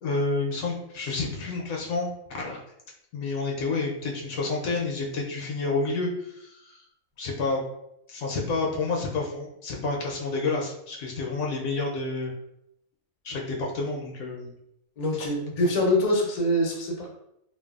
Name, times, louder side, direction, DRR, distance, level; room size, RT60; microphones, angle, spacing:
voice 1, 0.0-2.6 3.1-6.8 7.2-7.6 8.1-12.3 13.2-14.5, left 3 dB, 75° left, -1 dB, 0.9 m, -29 dB
voice 2, 15.0-17.1, left 1 dB, 50° left, -1 dB, 0.4 m, -24 dB
3.1 x 2.2 x 2.3 m, 0.78 s
omnidirectional pair, 1.6 m